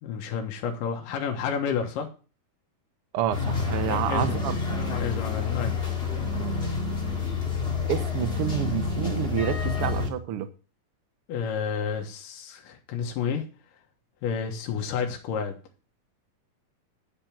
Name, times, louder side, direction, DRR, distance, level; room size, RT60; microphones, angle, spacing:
voice 1, 0.0-2.1 3.8-4.4 4.7-5.7 11.3-13.5 14.2-15.6, left 6 dB, 80° left, 2.9 m, -30 dB
voice 2, 3.1-4.8 6.4-6.6 7.9-10.5, right 10 dB, 85° right, 1.2 m, -29 dB
sound 1, 3.3-10.1, left 4 dB, 20° left, 1.8 m, -28 dB
10.5 x 5.3 x 7.3 m
omnidirectional pair, 3.8 m